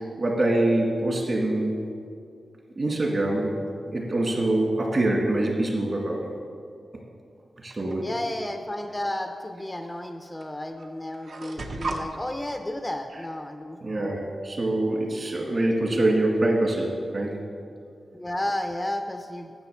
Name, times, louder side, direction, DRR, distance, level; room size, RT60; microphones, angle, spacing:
voice 1, 0.2-1.8 2.8-3.6 3.9-6.3 7.6-8.0 11.4-11.5 13.8-17.4, right 1 dB, 40° right, 0 dB, 2.0 m, -24 dB
sound 1, 7.7-8.2 9.4-9.5 10.4-10.5 10.8-12.1, right 3 dB, 60° right, 1.0 m, -35 dB
voice 2, 8.0-14.2 18.1-19.5, left 1 dB, 10° left, 5 dB, 0.5 m, -32 dB
11.0 x 7.5 x 7.0 m, 2.4 s
wide cardioid pair, 155°, 0 cm